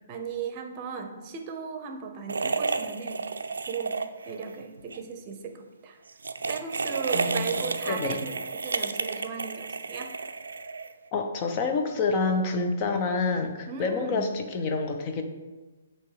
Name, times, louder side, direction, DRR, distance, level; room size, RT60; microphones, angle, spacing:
voice 1, 0.1-3.3 3.7-4.0 4.3-6.0 6.5-10.1 13.7-14.3, right 6 dB, 30° right, 5 dB, 0.8 m, -36 dB
sound 1, 2.3-4.5 4.8-5.0 6.1-11.1, right 4 dB, 90° right, 0.4 m, -31 dB
voice 2, 7.1-8.2 11.1-15.2, left 4 dB, 30° left, 5 dB, 0.8 m, -28 dB
7.9 x 3.0 x 4.8 m, 1.2 s
hypercardioid pair, 150°, 0 cm